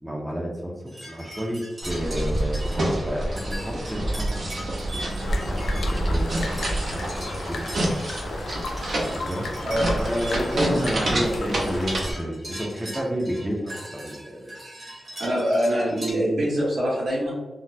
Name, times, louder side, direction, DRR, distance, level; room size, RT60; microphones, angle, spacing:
voice 1, 0.0-5.0 5.5-6.3 6.9-7.7 9.0-9.5 9.9-14.5, equal, 10° right, -2 dB, 0.5 m, -30 dB
sound 1, 0.9-16.1, right 1 dB, 30° right, 1.2 m, -41 dB
sound 2, 1.8-12.1, right 1 dB, 70° right, 0.8 m, -28 dB
sound 3, 5.2-12.1, left 3 dB, 90° left, 0.4 m, -35 dB
voice 2, 10.5-10.9 15.2-17.3, equal, 90° right, -6 dB, 1.3 m, -24 dB
3.9 x 2.2 x 2.6 m, 1.1 s
wide cardioid pair, 145°, 0 cm